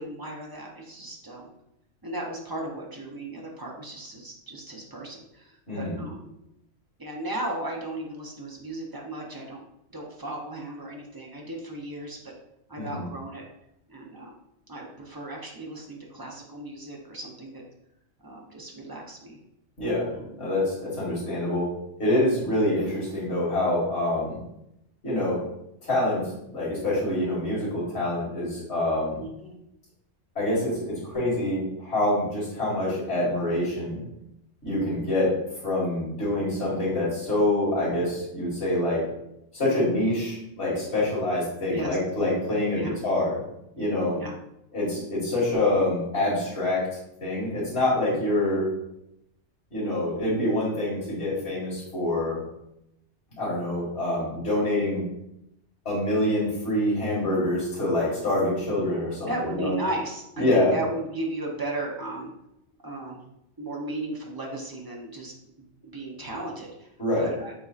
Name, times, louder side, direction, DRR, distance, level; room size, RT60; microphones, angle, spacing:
voice 1, 0.0-1.5 2.0-6.3 7.0-9.6 9.9-12.3 12.7-13.4 13.9-14.4 14.7-17.6 18.2-19.4 20.1-20.6 29.2-29.6 41.7-42.0 42.7-43.0 44.1-44.4 59.3-62.3 62.8-63.2 63.6-66.9 67.2-67.5, right 1 dB, 25° right, -1 dB, 0.6 m, -36 dB
voice 2, 5.7-6.0 12.8-13.0 19.8-20.1 20.4-21.7 22.0-24.3 25.0-25.4 25.8-29.2 30.4-34.0 34.6-35.3 35.6-39.1 39.5-43.4 43.8-44.2 44.7-46.9 47.2-48.7 49.7-52.4 53.4-55.0 55.9-59.7 60.4-60.7 67.0-67.3, left 1 dB, 65° left, -6 dB, 2.2 m, -26 dB
6.9 x 2.7 x 2.4 m, 0.82 s
omnidirectional pair, 1.2 m